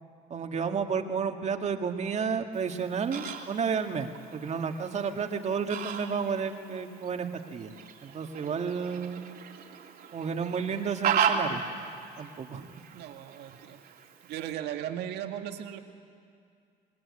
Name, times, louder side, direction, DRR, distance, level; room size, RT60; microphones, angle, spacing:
voice 1, 0.3-7.7 8.0-9.2 10.1-11.6 12.2-12.7, right 6 dB, 40° right, 5 dB, 1.9 m, -31 dB
Fowl, 2.5-14.5, right 7 dB, 60° right, 2.7 m, -36 dB
voice 2, 12.9-13.8 14.2-15.8, right 10 dB, 80° right, 6 dB, 1.9 m, -37 dB
26.0 x 19.5 x 9.8 m, 2.3 s
cardioid pair, 110°, 17 cm